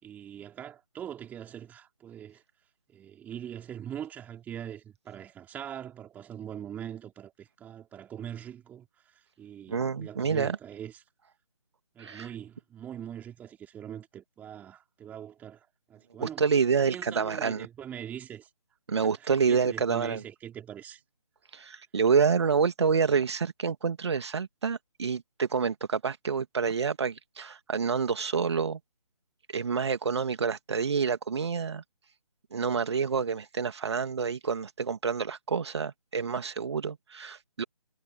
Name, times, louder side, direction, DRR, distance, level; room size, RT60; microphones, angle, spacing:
voice 1, 0.0-2.4 2.9-11.0 11.9-16.4 16.8-18.5 19.0-21.0, right 9 dB, 10° right, 4.9 m, -42 dB
voice 2, 9.7-10.6 12.0-12.3 16.2-17.7 18.9-20.2 21.5-28.8 29.5-31.8 32.5-37.6, right 6 dB, 45° right, 2.5 m, -28 dB
figure-of-eight pair, 150°, 19 cm